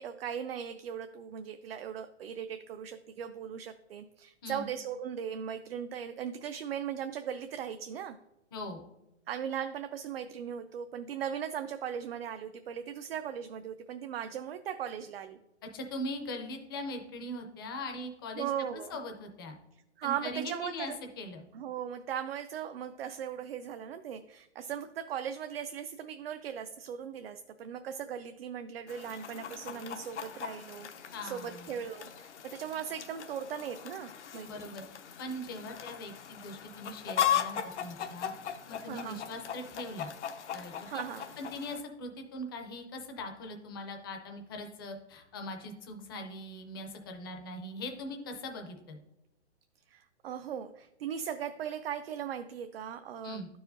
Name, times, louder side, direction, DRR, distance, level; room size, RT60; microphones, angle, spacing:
voice 1, 0.0-8.2 9.3-15.4 18.4-19.0 20.0-21.0 21.5-34.7 38.8-39.2 40.9-41.3 49.9-53.4, right 8 dB, 60° right, 8 dB, 0.4 m, -38 dB
voice 2, 15.7-19.6 20.0-20.9 21.2-21.5 31.1-31.8 34.4-34.9 35.2-40.1 40.5-41.0 41.4-49.0 53.2-53.5, left 1 dB, 20° left, 4 dB, 0.5 m, -41 dB
Chicken rooster, 28.9-41.8, left 10 dB, 75° left, 0.7 m, -38 dB
11.5 x 4.8 x 2.6 m, 0.94 s
hypercardioid pair, 165°, 35 cm